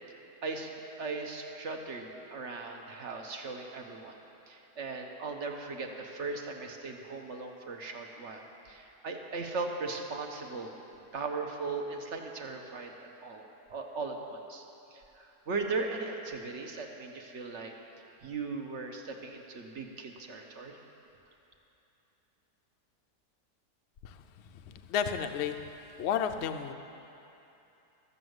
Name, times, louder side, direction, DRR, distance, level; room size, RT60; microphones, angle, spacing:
voice 1, 1.0-4.2 4.5-10.8 11.1-14.7 14.9-17.7 18.2-20.8, right 3 dB, 50° right, 3 dB, 1.1 m, -38 dB
voice 2, 24.7-25.6 26.0-26.7, left 8 dB, 65° left, 7 dB, 0.6 m, -31 dB
13.5 x 6.8 x 7.9 m, 2.9 s
omnidirectional pair, 1.7 m